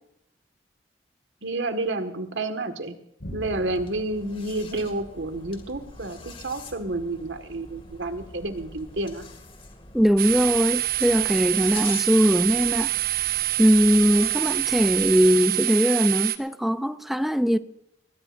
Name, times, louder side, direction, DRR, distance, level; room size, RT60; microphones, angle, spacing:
voice 1, 1.4-2.9 3.3-9.2, right 2 dB, 90° right, 1.7 m, -30 dB
Thunder, 3.2-12.6, equal, 85° left, 5.6 m, -47 dB
sound 1, 3.4-15.3, left 3 dB, 30° left, 2.2 m, -45 dB
voice 2, 9.9-12.9 13.2-13.3 13.6-17.6, equal, ahead, 0.4 m, -21 dB
sound 2, 10.2-16.4, right 16 dB, 55° right, 1.0 m, -26 dB
21.0 x 19.0 x 2.6 m
head